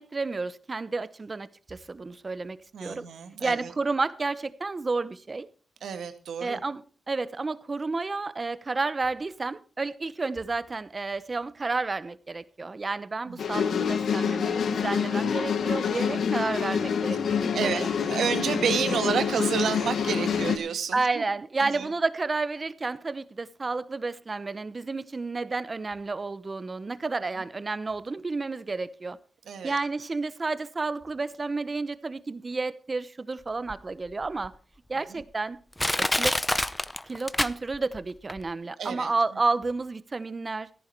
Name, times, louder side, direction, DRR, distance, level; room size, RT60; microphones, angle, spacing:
voice 1, 0.0-3.1 3.4-5.5 6.4-17.9 20.9-29.2 29.6-34.5 34.9-35.6 36.0-36.4 37.1-40.7, right 3 dB, 35° right, 0.9 m, -31 dB
voice 2, 2.7-3.7 5.8-6.6 13.3-13.6 16.1-16.4 17.5-21.2 21.6-21.9 29.5-29.8 35.1-35.2 38.8-39.1, right 7 dB, 90° right, 1.7 m, -30 dB
sound 1, 13.4-20.6, left 7 dB, 80° left, 1.3 m, -27 dB
Crushing, 33.7-33.8 34.4-34.5 35.2-35.3 35.8-38.0 38.3-38.4, left 1 dB, 10° left, 0.6 m, -26 dB
14.0 x 11.0 x 4.5 m
cardioid pair, 85°, 0 cm